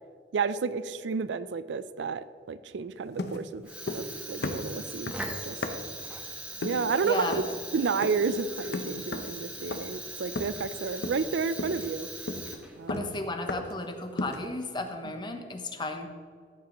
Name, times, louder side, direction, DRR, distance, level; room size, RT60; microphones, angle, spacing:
voice 1, 0.3-3.7 3.9-5.1 5.4-5.6 6.6-7.4 7.7-12.1 12.8-13.1 15.0-15.1, right 5 dB, 80° right, 14 dB, 0.4 m, -31 dB
sound 1, 3.2-4.2 4.4-6.0 6.6-6.9 7.3-7.6 8.0-8.3 8.7-9.4 9.7-10.0 10.4-10.7 11.0-11.3 11.6-13.8 14.2-14.5, left 2 dB, 65° left, 0.7 m, -35 dB
Fire, 3.6-13.0, right 2 dB, 5° right, 1.1 m, -40 dB
voice 2, 7.0-7.5 12.9-16.1, left 2 dB, 25° left, 5 dB, 0.9 m, -34 dB
14.0 x 7.3 x 3.1 m, 2.1 s
head